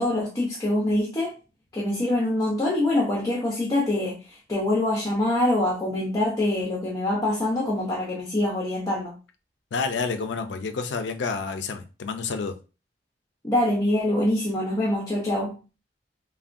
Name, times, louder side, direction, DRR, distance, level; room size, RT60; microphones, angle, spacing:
voice 1, 0.0-1.3 1.7-9.1 13.4-15.6, left 1 dB, 20° left, 0.6 m, -25 dB
voice 2, 9.7-12.6, left 4 dB, 85° left, 0.4 m, -29 dB
3.4 x 2.2 x 2.5 m
head